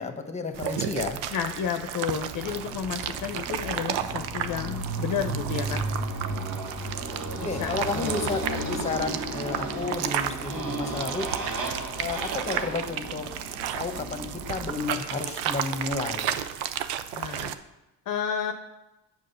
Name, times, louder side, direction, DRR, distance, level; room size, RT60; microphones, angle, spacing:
voice 1, 0.0-1.2 7.4-11.3 12.0-13.3 13.7-16.4, left 3 dB, 15° left, 7 dB, 1.2 m, -32 dB
sound 1, 0.5-17.5, right 10 dB, 85° right, 0.6 m, -33 dB
voice 2, 1.3-5.8 7.3-8.3 8.6-8.7 17.1-17.5 18.1-18.5, left 8 dB, 55° left, 6 dB, 0.7 m, -32 dB
Motorcycle, 2.2-14.9, right 2 dB, 55° right, 2.1 m, -34 dB
7.6 x 6.3 x 5.6 m, 0.98 s
supercardioid pair, 65°, 39 cm